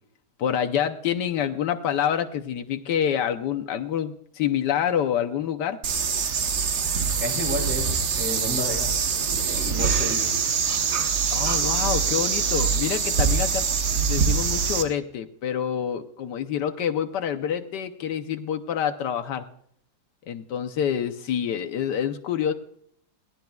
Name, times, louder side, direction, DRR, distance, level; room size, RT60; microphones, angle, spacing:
voice 1, 0.4-5.8 11.3-19.4 20.3-22.5, left 9 dB, 80° left, 8 dB, 1.4 m, -27 dB
sound 1, 5.8-14.8, right 6 dB, 70° right, 1.8 m, -24 dB
voice 2, 7.1-9.0 9.5-10.3, left 1 dB, 5° right, 0 dB, 6.1 m, -31 dB
22.0 x 17.5 x 2.3 m, 0.70 s
omnidirectional pair, 1.8 m